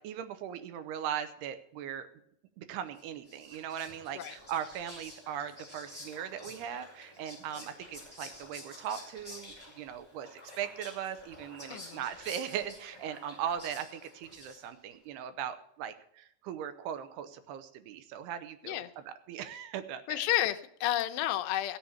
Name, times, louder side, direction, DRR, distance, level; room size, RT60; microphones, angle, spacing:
voice 1, 0.0-2.1 2.6-20.0, right 9 dB, 80° right, 10 dB, 2.8 m, -39 dB
Whispering, 3.0-14.9, left 1 dB, 5° right, 6.2 m, -50 dB
voice 2, 11.7-12.0 18.6-18.9 20.1-21.8, left 13 dB, 85° left, 8 dB, 2.9 m, -31 dB
15.5 x 7.3 x 7.0 m, 0.70 s
omnidirectional pair, 4.8 m